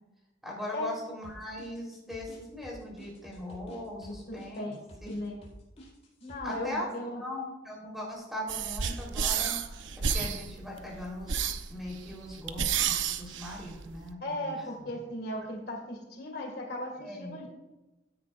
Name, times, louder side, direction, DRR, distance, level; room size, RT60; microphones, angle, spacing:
voice 1, 0.4-5.2 6.4-6.9 7.1-9.9 10.1-15.0 17.0-17.4, left 1 dB, ahead, -3 dB, 3.8 m, -40 dB
sound 1, 1.2-6.7, equal, 35° left, 4.4 m, -50 dB
voice 2, 4.1-4.8 5.1-5.4 6.2-7.2 14.2-17.5, left 1 dB, 55° left, 1 dB, 2.1 m, -37 dB
sound 2, 8.5-14.1, right 7 dB, 70° right, 0.8 m, -31 dB
16.5 x 9.9 x 2.5 m, 1.0 s
head